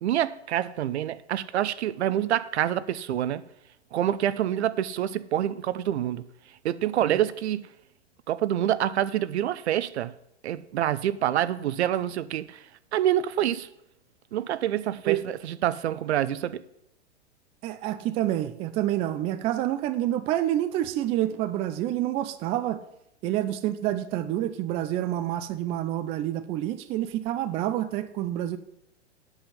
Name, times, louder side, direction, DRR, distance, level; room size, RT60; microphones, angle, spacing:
voice 1, 0.0-3.4 3.9-6.2 6.6-7.7 8.3-10.1 10.4-12.6 12.9-13.7 14.3-16.6, right 11 dB, 75° right, 0.6 m, -27 dB
voice 2, 17.6-22.8 23.2-28.6, right 13 dB, 20° right, 0.3 m, -28 dB
8.1 x 5.7 x 6.9 m
hypercardioid pair, 120°, 34 cm